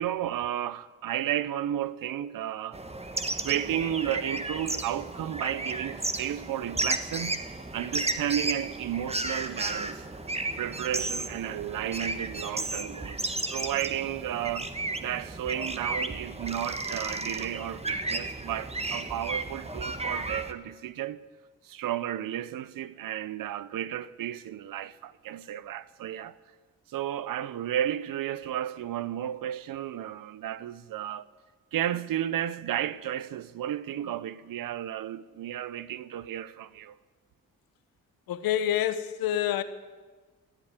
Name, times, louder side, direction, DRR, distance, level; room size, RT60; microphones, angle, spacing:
voice 1, 0.0-2.8 3.4-7.4 7.7-10.0 10.6-14.7 15.0-21.2 21.6-26.4 26.9-31.2 31.7-37.0, right 11 dB, 70° right, 0.8 m, -33 dB
sound 1, 2.7-20.5, right 2 dB, 20° right, 1.5 m, -33 dB
voice 2, 38.3-39.6, left 11 dB, 80° left, 1.1 m, -27 dB
15.5 x 8.9 x 9.6 m
supercardioid pair, 50°, 35 cm